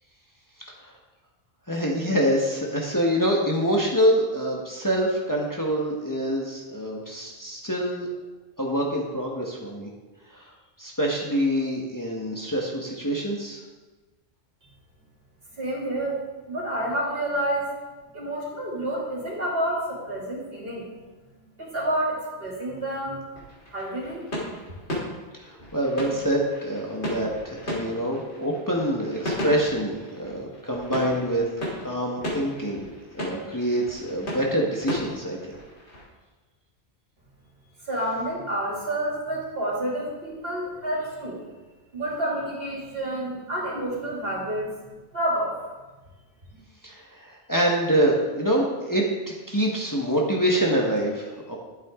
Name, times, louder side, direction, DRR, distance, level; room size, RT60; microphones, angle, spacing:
voice 1, 1.7-8.1 8.6-9.9 10.3-10.5 10.8-13.6 25.3-31.4 31.8-32.9 33.1-35.6 46.8-51.6, equal, 20° left, -2 dB, 1.3 m, -26 dB
voice 2, 15.6-16.2 16.5-17.7 18.1-20.9 21.6-23.2 23.7-24.2 37.8-41.4 41.9-45.6, right 1 dB, 60° right, -5 dB, 3.2 m, -29 dB
sound 1, 23.3-36.0, equal, 85° left, 3.5 m, -36 dB
12.0 x 8.7 x 3.7 m, 1.2 s
omnidirectional pair, 1.1 m